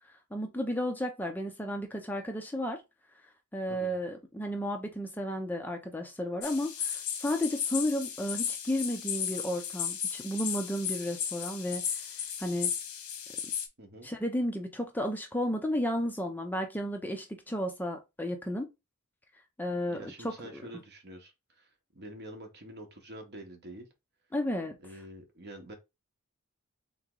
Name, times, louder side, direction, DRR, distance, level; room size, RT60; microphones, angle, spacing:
voice 1, 0.3-2.8 3.5-11.8 12.4-12.7 14.0-18.7 19.6-20.4 24.3-24.8, equal, 10° left, 0.5 m, -33 dB
sound 1, 6.4-13.7, left 8 dB, 75° left, 1.0 m, -35 dB
voice 2, 13.8-14.1 19.9-23.9 24.8-25.7, right 1 dB, 50° right, 1.1 m, -47 dB
3.7 x 3.0 x 3.7 m
head